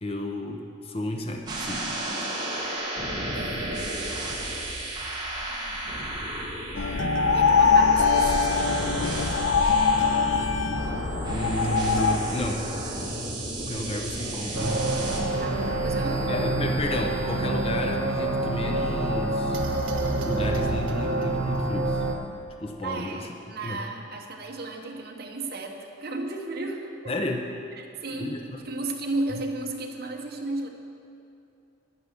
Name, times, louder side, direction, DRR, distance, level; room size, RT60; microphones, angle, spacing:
voice 1, 0.0-1.9 11.3-13.2 13.6-15.0 16.3-19.6 20.3-22.1 22.6-23.3 23.6-23.8 27.1-27.5 28.2-28.6, left 1 dB, 30° left, 3 dB, 0.7 m, -32 dB
sound 1, 1.5-16.8, right 1 dB, 20° right, 1.5 m, -33 dB
voice 2, 3.3-4.2 7.3-9.2 15.4-16.6 22.8-26.9 27.8-28.3 28.6-30.7, right 2 dB, 50° right, 1 dB, 1.1 m, -34 dB
sound 2, 6.7-12.2, left 5 dB, 65° left, 0.5 m, -22 dB
sound 3, 14.5-22.1, right 2 dB, 90° right, 1.2 m, -27 dB
9.9 x 9.6 x 5.8 m, 2.8 s
head